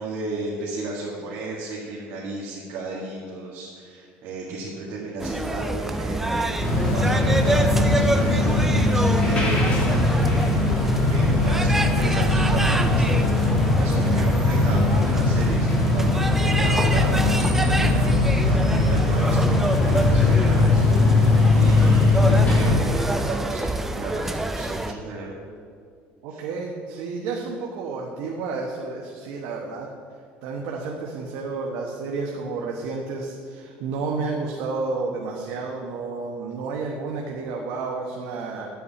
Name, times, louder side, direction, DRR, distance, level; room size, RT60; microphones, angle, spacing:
voice 1, 0.0-7.5 7.9-9.8 10.2-10.7 11.0-13.2 13.8-20.8 21.5-25.4 26.3-26.4, right 2 dB, 60° right, -6 dB, 1.9 m, -34 dB
sound 1, 5.2-24.9, right 1 dB, 5° right, 0.5 m, -27 dB
sound 2, 6.6-22.7, left 2 dB, 30° left, 2.4 m, -20 dB
voice 2, 26.2-29.9 30.4-38.7, right 4 dB, 80° right, -1 dB, 1.1 m, -31 dB
11.5 x 8.4 x 4.2 m, 2.2 s
cardioid pair, 155°, 4 cm